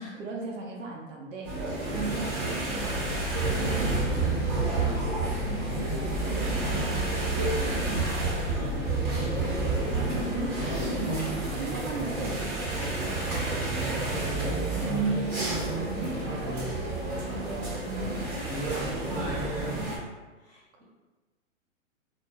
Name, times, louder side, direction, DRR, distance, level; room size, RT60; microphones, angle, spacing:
voice 1, 0.0-1.6 1.9-3.0 3.4-9.9 10.2-14.4 14.7-15.2 15.6-19.9, right 2 dB, 75° right, -1 dB, 0.7 m, -40 dB
sound 1, 1.4-20.0, right 3 dB, 40° right, 0.9 m, -29 dB
Bass Tension, 2.5-14.4, left 12 dB, 75° left, 0.5 m, -39 dB
voice 2, 10.6-11.0 15.1-15.7 20.4-20.8, left 1 dB, 10° right, -11 dB, 0.5 m, -46 dB
2.1 x 2.0 x 3.3 m, 1.2 s
hypercardioid pair, 125°, 39 cm